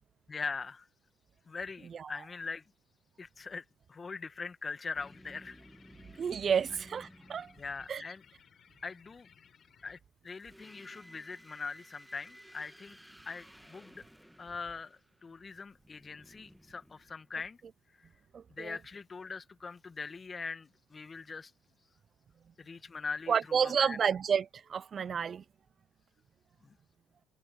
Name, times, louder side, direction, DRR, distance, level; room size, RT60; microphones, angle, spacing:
voice 1, 0.3-0.9 1.5-2.6 3.2-5.6 7.6-8.2 8.8-9.3 9.8-10.0 10.2-13.0 13.3-14.0 14.4-17.6 18.5-21.5 22.6-24.0 26.6-26.7, left 4 dB, 30° left, 2.0 m, -42 dB
sound 1, 4.9-8.2 10.3-17.6, equal, ahead, 1.8 m, -56 dB
sound 2, 5.0-10.0, left 7 dB, 45° left, 5.3 m, -62 dB
voice 2, 6.2-7.5 7.9-8.0 18.3-18.8 23.3-25.4, right 7 dB, 45° right, 0.6 m, -30 dB
hypercardioid pair, 65°, 0 cm